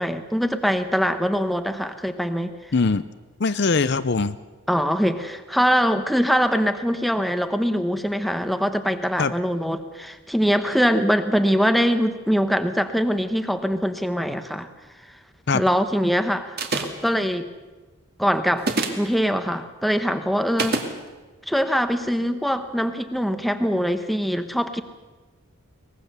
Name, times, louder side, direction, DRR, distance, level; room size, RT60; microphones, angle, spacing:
voice 1, 0.0-2.5 4.7-14.7 15.5-17.5 18.2-18.7 19.0-20.8 21.5-24.8, equal, ahead, 8 dB, 1.0 m, -23 dB
voice 2, 2.7-3.0 3.4-4.4 9.2-9.3 15.5-15.6, left 4 dB, 50° left, 13 dB, 0.6 m, -21 dB
sound 1, 16.6-17.1 18.6-19.1 20.6-20.9, right 3 dB, 45° right, 2.2 m, -25 dB
23.0 x 20.0 x 6.9 m, 1.3 s
head